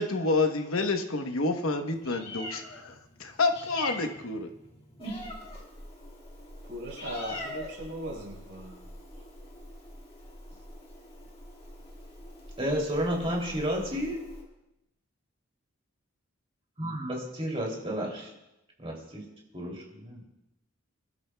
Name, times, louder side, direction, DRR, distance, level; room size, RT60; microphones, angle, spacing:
voice 1, 0.0-4.5, left 3 dB, 70° left, 5 dB, 1.0 m, -29 dB
Meow, 1.9-14.4, left 1 dB, 25° left, 1.9 m, -44 dB
voice 2, 6.7-8.8, right 1 dB, 60° right, -3 dB, 5.2 m, -38 dB
voice 3, 12.6-14.2 16.8-18.3 18.8-19.2 19.5-20.2, equal, 25° right, -1 dB, 2.7 m, -31 dB
25.0 x 12.0 x 2.3 m, 0.92 s
head